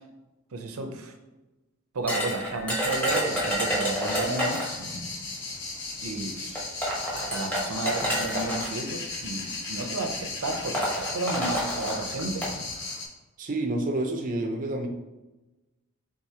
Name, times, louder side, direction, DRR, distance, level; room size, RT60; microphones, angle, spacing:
voice 1, 0.5-1.1 1.9-4.8 6.0-6.7 7.1-12.5, right 2 dB, 90° right, 6 dB, 0.6 m, -32 dB
sound 1, 2.1-4.8 5.9-6.0 6.6-8.7 9.6-9.8 10.1-10.2 10.5-12.5, equal, 10° left, 1.0 m, -29 dB
sound 2, 2.9-13.1, left 3 dB, 55° left, 0.9 m, -36 dB
voice 2, 13.4-14.9, right 1 dB, 40° right, 3 dB, 0.5 m, -28 dB
4.7 x 3.8 x 2.8 m, 1.1 s
head